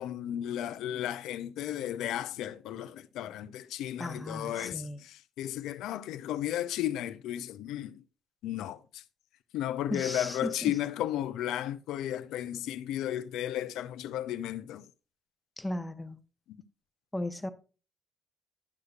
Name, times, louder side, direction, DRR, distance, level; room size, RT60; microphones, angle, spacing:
voice 1, 0.0-8.0 8.4-9.0 9.5-14.9 16.5-16.6, left 12 dB, 85° left, 0.5 m, -34 dB
voice 2, 4.0-5.0 9.9-10.7 15.6-16.2 17.1-17.5, left 1 dB, 10° left, 0.7 m, -36 dB
11.0 x 6.5 x 2.4 m
cardioid pair, 95°, 0 cm